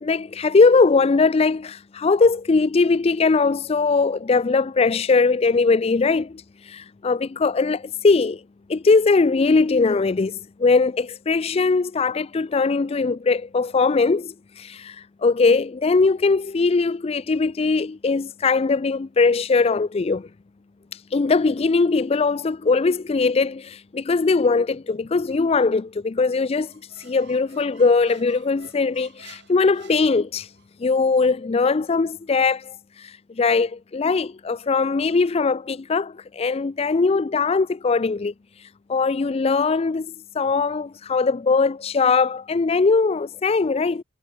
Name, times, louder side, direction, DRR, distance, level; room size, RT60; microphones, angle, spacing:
voice 1, 0.0-6.4 6.7-8.4 8.7-14.3 14.6-14.9 15.2-20.3 21.1-26.7 27.0-30.5 30.8-32.7 33.4-38.3 38.9-44.0, left 4 dB, 30° left, 0.4 m, -20 dB
Squeak, 26.6-30.7, right 6 dB, 55° right, 3.7 m, -51 dB
head